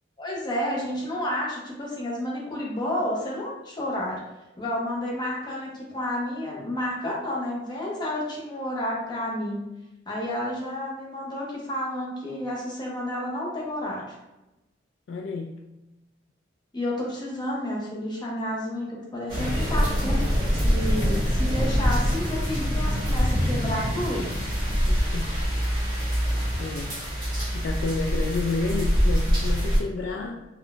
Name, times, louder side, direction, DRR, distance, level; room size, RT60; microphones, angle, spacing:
voice 1, 0.2-4.2 4.6-9.6 10.1-14.1 16.7-20.2 20.6-24.3, left 1 dB, 25° left, -4 dB, 0.8 m, -30 dB
voice 2, 15.1-15.6 24.9-25.3 26.6-27.0 27.5-30.5, left 3 dB, 70° left, 2 dB, 0.3 m, -30 dB
sound 1, 19.3-29.8, equal, 25° right, 1.1 m, -24 dB
3.7 x 2.1 x 2.4 m, 0.98 s
head